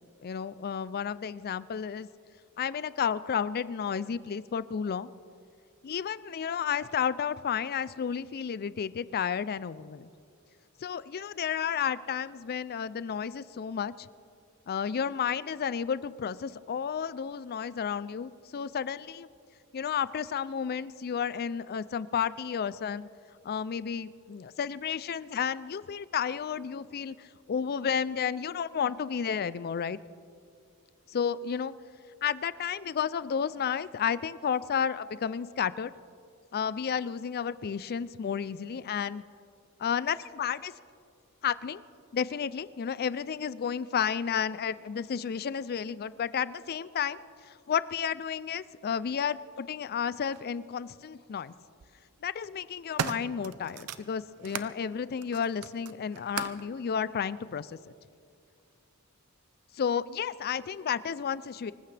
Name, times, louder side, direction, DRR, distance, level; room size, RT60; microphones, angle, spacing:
voice 1, 0.2-2.1 2.6-5.1 5.8-10.1 10.8-14.1 14.7-19.3 19.7-23.1 23.4-30.0 31.1-31.7 32.2-35.9 36.5-39.2 39.8-40.7 41.4-41.8 42.1-47.2 47.5-51.5 52.2-57.8 59.7-61.7, left 7 dB, 45° left, 17 dB, 0.4 m, -32 dB
sound 1, 50.3-50.4 51.5-51.9 52.4-54.7 55.2-56.7 57.5-57.6, right 7 dB, 85° right, 0.6 m, -38 dB
25.0 x 15.0 x 3.4 m, 2.4 s
head